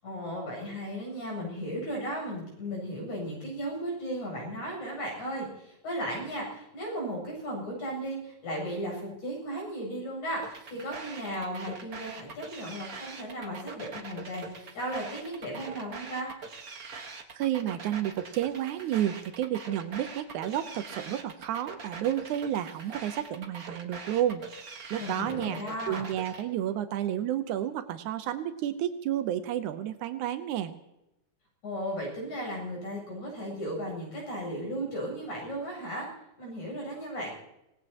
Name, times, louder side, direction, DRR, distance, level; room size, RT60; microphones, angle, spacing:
voice 1, 0.0-16.3 25.0-26.1 31.6-36.1 36.4-37.3, equal, 85° left, -1 dB, 9.6 m, -35 dB
sound 1, 10.4-26.4, right 4 dB, 40° right, 1.4 m, -43 dB
voice 2, 17.3-24.4 24.9-25.6 25.9-30.7, right 11 dB, 85° right, 9 dB, 2.3 m, -31 dB
26.0 x 18.5 x 2.9 m, 0.89 s
omnidirectional pair, 3.4 m